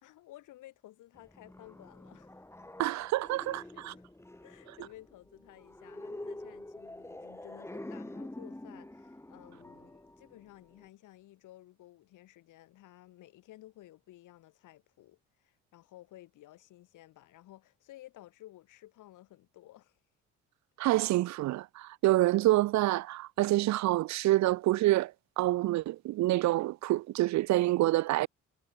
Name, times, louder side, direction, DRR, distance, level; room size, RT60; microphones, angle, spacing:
voice 1, 0.0-2.5 2.8-3.0 3.4-4.1 4.4-20.0, left 15 dB, 85° left, 2.4 m, -55 dB
sound 1, 1.1-10.9, left 1 dB, 10° left, 2.8 m, -47 dB
voice 2, 2.8-3.6 20.8-25.1 25.4-28.3, right 16 dB, 65° right, 0.4 m, -27 dB
cardioid pair, 90°, 30 cm